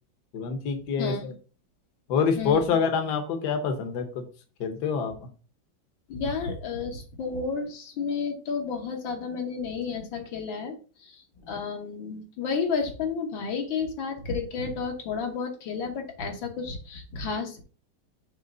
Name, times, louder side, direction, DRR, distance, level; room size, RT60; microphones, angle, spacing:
voice 1, 0.3-1.3 2.1-4.2 4.6-5.3, left 6 dB, 65° left, 6 dB, 1.4 m, -26 dB
voice 2, 1.0-1.3 2.4-2.8 6.1-10.7 11.0-11.2 11.5-17.6, left 5 dB, 80° left, 3 dB, 1.9 m, -31 dB
6.5 x 3.1 x 5.4 m, 0.36 s
omnidirectional pair, 2.1 m